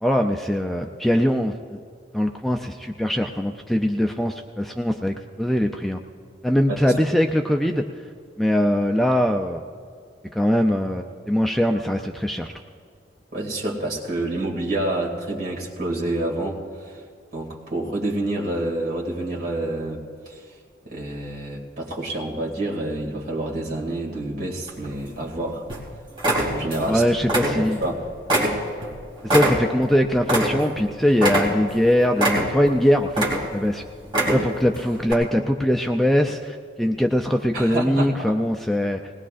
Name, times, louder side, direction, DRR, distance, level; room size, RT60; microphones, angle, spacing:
voice 1, 0.0-1.8 2.1-6.0 6.4-7.9 8.4-9.6 10.3-12.5 26.9-27.8 29.2-33.8 34.3-39.0, equal, ahead, 3 dB, 0.4 m, -22 dB
voice 2, 13.3-17.0 17.3-20.0 20.3-20.4 20.8-25.6 26.3-27.2 27.5-28.0 37.5-38.4, right 1 dB, 50° right, -3 dB, 2.3 m, -28 dB
sound 1, 24.7-25.3 25.7-25.9 26.2-26.9 27.2-27.9 28.3-30.8 31.2-31.8 32.2-32.7 33.1-33.7 34.0-34.6 35.1-35.2, right 1 dB, 25° right, 2.6 m, -23 dB
20.5 x 19.0 x 2.5 m, 2.2 s
head